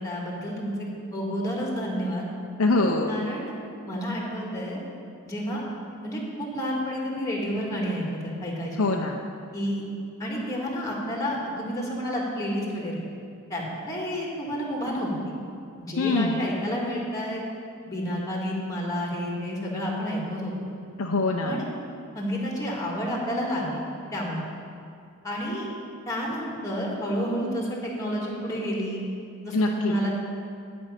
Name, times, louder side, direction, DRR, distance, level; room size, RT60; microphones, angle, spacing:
voice 1, 0.0-2.3 3.1-3.5 3.9-4.8 5.2-5.6 6.0-8.9 9.5-9.8 10.2-13.0 13.5-15.4 15.8-17.4 17.9-20.7 21.4-21.6 22.1-23.8 24.1-24.4 25.2-25.7 26.1-29.0 29.4-30.2, equal, 15° left, -3 dB, 2.0 m, -30 dB
voice 2, 2.6-3.3 8.8-9.3 16.0-16.4 21.0-21.6 29.5-30.0, left 2 dB, 65° left, 1 dB, 0.6 m, -24 dB
11.0 x 5.4 x 8.5 m, 2.4 s
head